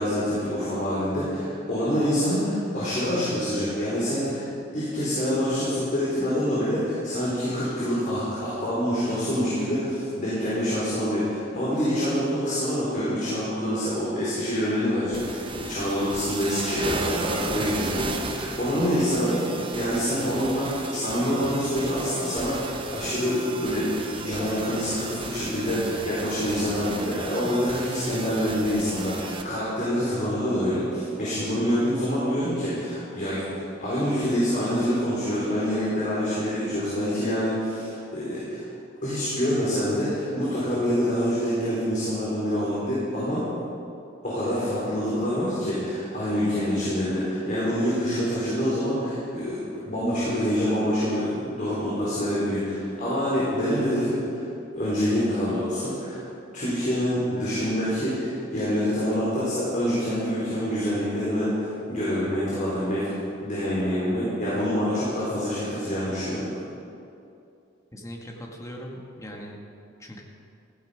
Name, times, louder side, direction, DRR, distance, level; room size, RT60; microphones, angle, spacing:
voice 1, 0.0-4.4 4.7-38.7 39.0-43.4 44.2-54.4 54.7-56.2 56.5-63.1 63.4-66.4, equal, 40° left, -9 dB, 4.5 m, -26 dB
sound 1, 15.1-29.4, right 3 dB, 25° right, 1.2 m, -35 dB
voice 2, 67.9-69.6 70.0-70.2, equal, 15° left, 0 dB, 1.9 m, -40 dB
16.0 x 15.0 x 5.2 m, 2.7 s
head